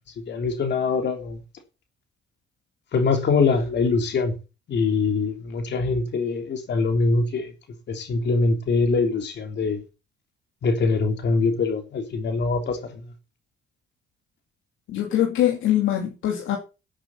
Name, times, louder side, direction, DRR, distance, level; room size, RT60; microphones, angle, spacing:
voice 1, 0.3-1.4 2.9-4.3 4.7-7.5 7.9-9.8 10.6-13.0, left 4 dB, 60° left, 3.4 m, -23 dB
voice 2, 14.9-16.6, left 12 dB, 85° left, 2.9 m, -23 dB
11.5 x 8.9 x 7.2 m
cardioid pair, 90°, 20 cm